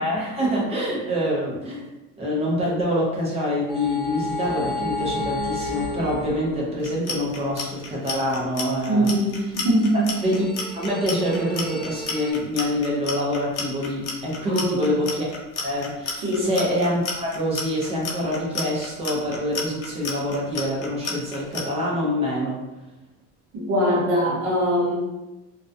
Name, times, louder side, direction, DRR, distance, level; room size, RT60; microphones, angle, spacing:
voice 1, 0.0-1.8 2.2-9.1 9.9-10.4 10.7-15.3 15.6-22.6, equal, 20° right, -4 dB, 0.5 m, -25 dB
sound 1, 3.7-6.9 9.7-12.3, left 2 dB, 35° left, 1.0 m, -32 dB
Clock, 6.8-21.6, left 5 dB, 55° left, 0.5 m, -31 dB
voice 2, 8.9-10.1 14.4-14.9 16.2-16.5 23.5-25.0, equal, 60° right, -7 dB, 0.8 m, -22 dB
2.3 x 2.2 x 2.5 m, 1.0 s
cardioid pair, 170°, 29 cm